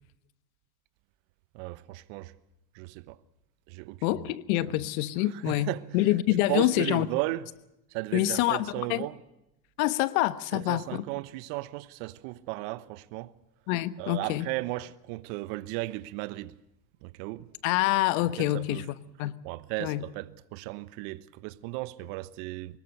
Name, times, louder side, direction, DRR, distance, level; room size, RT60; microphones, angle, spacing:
voice 1, 1.5-2.3 2.7-3.2 3.7-4.2 5.3-5.8 6.5-7.5 7.9-9.2 10.5-13.3 14.0-16.6 17.0-17.5 18.2-18.9 19.2-22.8, right 19 dB, 60° right, 1.2 m, -35 dB
voice 2, 4.0-7.1 8.1-9.0 9.8-11.0 13.7-14.5 17.6-18.8 19.2-19.3 19.8-20.0, left 16 dB, 65° left, 1.3 m, -26 dB
24.0 x 21.0 x 6.7 m
hypercardioid pair, 95°, 45 cm